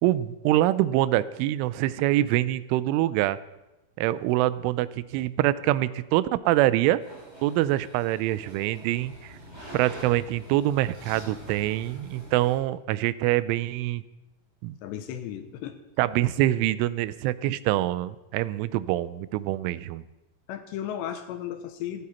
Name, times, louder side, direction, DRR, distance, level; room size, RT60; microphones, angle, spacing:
voice 1, 0.0-3.4 4.0-7.0 7.4-9.4 9.7-14.0 14.6-14.8 16.0-20.0, right 15 dB, 90° right, 16 dB, 3.1 m, -25 dB
sound 1, 7.0-12.6, equal, 10° right, 5.6 m, -45 dB
voice 2, 14.8-15.8 20.5-22.1, left 10 dB, 75° left, 8 dB, 2.9 m, -35 dB
16.5 x 14.5 x 4.3 m, 0.99 s
omnidirectional pair, 5.5 m